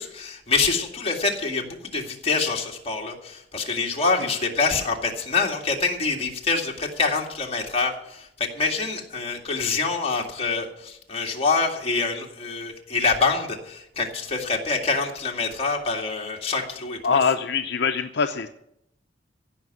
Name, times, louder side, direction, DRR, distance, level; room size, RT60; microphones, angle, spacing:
voice 1, 0.0-17.0, left 4 dB, 35° left, 0 dB, 2.1 m, -26 dB
voice 2, 17.0-18.5, left 5 dB, 65° left, 7 dB, 0.6 m, -23 dB
16.0 x 5.9 x 9.5 m, 0.78 s
head